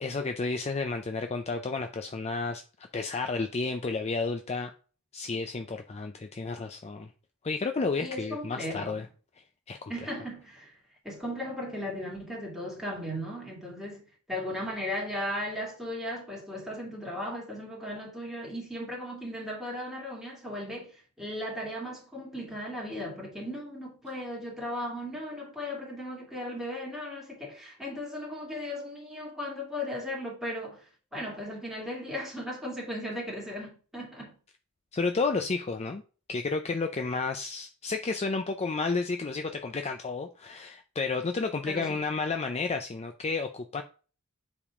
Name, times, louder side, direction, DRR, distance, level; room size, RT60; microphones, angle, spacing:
voice 1, 0.0-2.6 2.9-4.7 5.1-7.1 7.4-9.1 9.7-9.9 34.9-36.0 36.3-43.8, left 4 dB, 30° left, 0.5 m, -31 dB
voice 2, 8.0-9.0 9.9-10.8 11.0-30.8 31.1-34.3 41.7-42.1, left 1 dB, ahead, 2.2 m, -36 dB
7.3 x 3.6 x 4.8 m
head